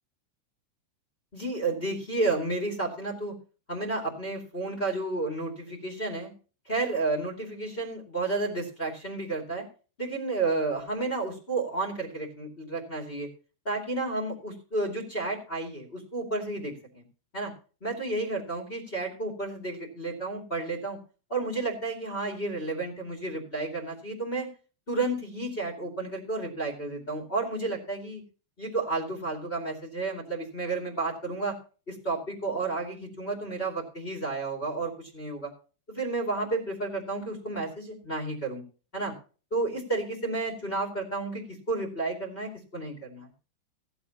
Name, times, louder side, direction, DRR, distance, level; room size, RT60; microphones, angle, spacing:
voice 1, 1.3-3.3 3.7-6.3 6.6-9.6 10.0-13.3 13.6-17.0 17.3-17.5 17.8-21.0 21.3-24.5 24.9-28.2 28.6-31.6 31.9-35.5 35.9-38.6 38.9-39.1 39.5-43.3, right 3 dB, 35° left, 0 dB, 0.9 m, -31 dB
16.0 x 11.0 x 2.9 m, 0.36 s
omnidirectional pair, 5.7 m